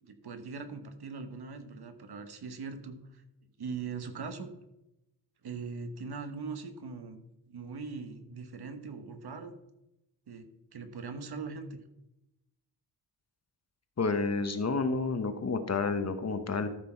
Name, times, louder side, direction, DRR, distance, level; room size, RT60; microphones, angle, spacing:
voice 1, 0.0-3.2 3.6-4.5 5.4-9.5 10.3-11.8, right 4 dB, 65° right, 8 dB, 1.2 m, -41 dB
voice 2, 14.0-16.7, left 4 dB, 40° left, 9 dB, 0.9 m, -30 dB
13.5 x 6.0 x 4.4 m, 0.90 s
wide cardioid pair, 155°, 42 cm